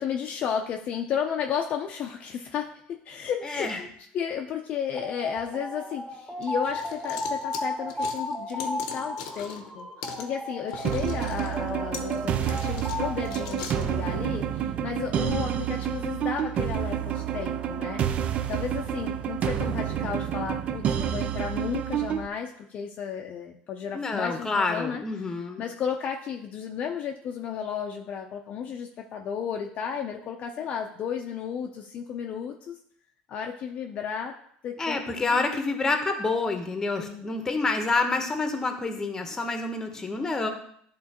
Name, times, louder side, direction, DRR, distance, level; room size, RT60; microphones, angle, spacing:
voice 1, 0.0-18.0 18.5-25.0 25.6-32.8 33.3-34.4 34.6-35.4 37.0-37.3, left 7 dB, 40° left, 2 dB, 0.5 m, -33 dB
voice 2, 3.4-3.8 23.9-25.7 34.8-40.5, left 3 dB, 15° left, 5 dB, 0.9 m, -28 dB
sound 1, 4.9-13.6, left 2 dB, 10° right, 0.9 m, -35 dB
sound 2, 6.4-9.7 10.0-10.2 10.7-13.8, left 7 dB, 90° left, 0.8 m, -41 dB
sound 3, 10.8-22.3, right 9 dB, 40° right, 0.4 m, -29 dB
11.0 x 3.7 x 2.9 m, 0.65 s
cardioid pair, 135°, 3 cm